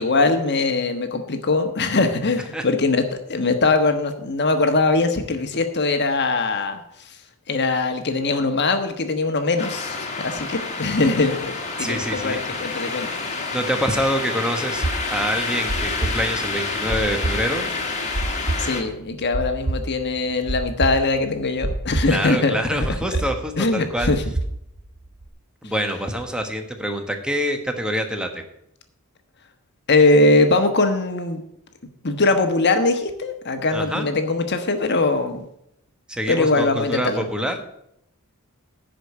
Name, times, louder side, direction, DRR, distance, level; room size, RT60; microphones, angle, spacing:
voice 1, 0.0-6.8 7.5-13.1 18.6-22.7 23.1-23.2 23.6-24.2 25.6-25.7 29.9-31.4 32.0-35.4 36.3-37.2, left 3 dB, 55° left, 7 dB, 1.3 m, -21 dB
sound 1, 9.6-18.8, left 4 dB, 35° left, 1.7 m, -28 dB
voice 2, 11.8-12.5 13.5-14.8 15.1-17.7 22.1-24.1 25.6-28.4 33.7-34.1 36.1-37.5, equal, 5° right, 5 dB, 1.3 m, -26 dB
sound 2, 14.8-23.4 23.6-25.3, right 2 dB, 35° right, 1.2 m, -27 dB
10.5 x 5.1 x 8.4 m, 0.76 s
head